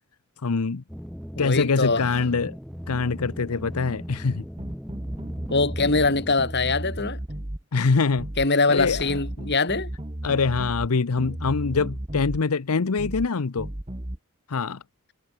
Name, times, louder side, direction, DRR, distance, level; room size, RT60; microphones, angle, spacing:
voice 1, 0.4-0.8 1.4-2.6 2.9-4.4 7.7-8.3 8.7-9.1 10.2-13.7 14.5-14.8, left 4 dB, 85° left, 0.8 m, -24 dB
sound 1, 0.9-6.3, equal, ahead, 6.4 m, -38 dB
voice 2, 1.3-2.0 5.5-7.2 8.4-9.9, left 3 dB, 50° left, 3.4 m, -23 dB
sound 2, 4.6-6.1 6.4-7.6 8.2-8.5 8.8-10.9 11.2-12.4 13.0-13.3 13.6-14.2, right 1 dB, 25° right, 1.5 m, -34 dB
head